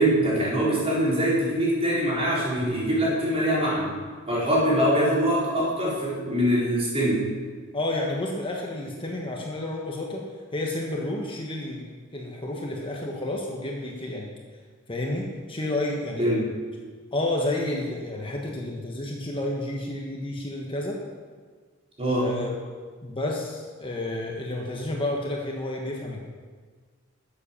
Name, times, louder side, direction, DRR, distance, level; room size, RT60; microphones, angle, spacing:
voice 1, 0.0-3.9 4.3-7.2 16.2-16.5 22.0-22.3, equal, 30° right, -6 dB, 4.3 m, -23 dB
voice 2, 7.7-10.2 10.5-14.3 14.9-16.3 17.1-21.0 22.2-22.6 23.0-26.2, left 1 dB, 25° left, -1 dB, 1.3 m, -30 dB
12.0 x 7.7 x 7.1 m, 1.6 s
head